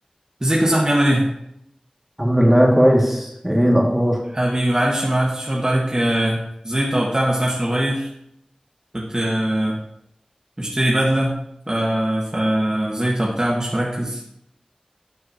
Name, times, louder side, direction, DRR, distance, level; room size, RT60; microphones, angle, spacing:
voice 1, 0.4-1.3 4.3-8.1 8.9-9.8 10.6-11.3 11.7-14.2, right 1 dB, 35° right, -4 dB, 1.5 m, -21 dB
voice 2, 2.2-4.2, equal, 10° right, -1 dB, 2.1 m, -16 dB
12.0 x 6.4 x 2.9 m, 0.77 s
wide cardioid pair, 45°, 2 cm